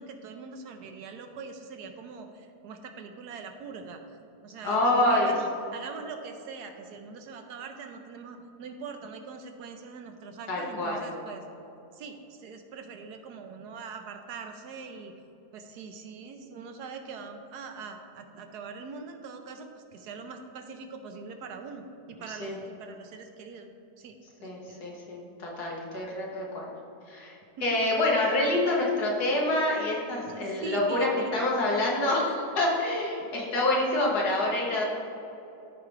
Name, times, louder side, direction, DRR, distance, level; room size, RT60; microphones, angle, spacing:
voice 1, 0.0-4.0 4.4-11.4 11.9-15.1 15.5-23.7 24.0-24.2 24.7-24.9 27.6-27.8 30.2-31.3 32.2-32.3, right 5 dB, 75° right, 6 dB, 1.2 m, -42 dB
voice 2, 4.6-5.3 10.5-11.1 22.3-22.5 24.4-26.7 27.1-27.4 27.6-32.3 32.6-34.8, left 1 dB, 70° left, -3 dB, 2.0 m, -27 dB
14.0 x 4.8 x 3.2 m, 2.8 s
omnidirectional pair, 1.8 m